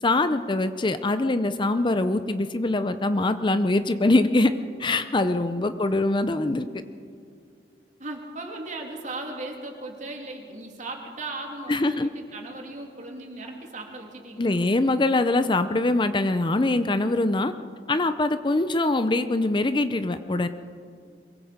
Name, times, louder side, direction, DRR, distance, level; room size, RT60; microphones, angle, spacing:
voice 1, 0.0-4.5 4.8-6.7 11.7-12.1 14.4-17.5 17.9-20.5, left 2 dB, 25° left, 10 dB, 0.6 m, -23 dB
voice 2, 8.0-14.5, right 2 dB, 45° right, 1 dB, 3.0 m, -37 dB
23.0 x 22.5 x 5.1 m, 2.2 s
head